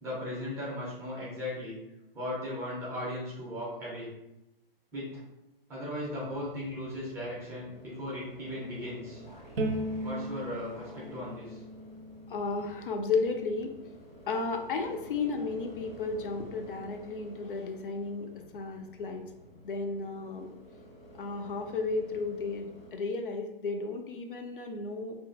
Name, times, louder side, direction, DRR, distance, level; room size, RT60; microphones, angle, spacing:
voice 1, 0.0-1.8 2.1-4.1 4.9-5.2 5.7-9.2 10.0-11.6, left 1 dB, 10° right, -7 dB, 0.4 m, -37 dB
sound 1, 6.0-22.9, equal, 80° left, 1.1 m, -51 dB
Bowed string instrument, 9.6-12.8, right 1 dB, 80° right, 0.5 m, -36 dB
voice 2, 12.3-13.7 14.3-19.3 19.6-20.5 21.2-25.2, left 4 dB, 65° left, 4 dB, 0.4 m, -33 dB
2.5 x 2.2 x 2.4 m, 0.90 s
figure-of-eight pair, 120°, 29 cm